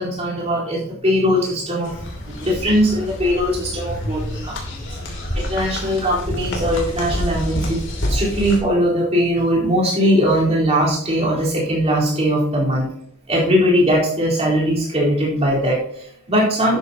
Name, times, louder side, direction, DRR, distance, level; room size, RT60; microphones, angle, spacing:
voice 1, 0.0-1.9 2.2-5.0 5.3-7.8 8.1-12.9 13.3-16.8, equal, 30° right, -5 dB, 4.2 m, -20 dB
sound 1, 1.8-8.6, equal, 55° left, 2.9 m, -27 dB
12.0 x 9.5 x 2.9 m, 0.68 s
head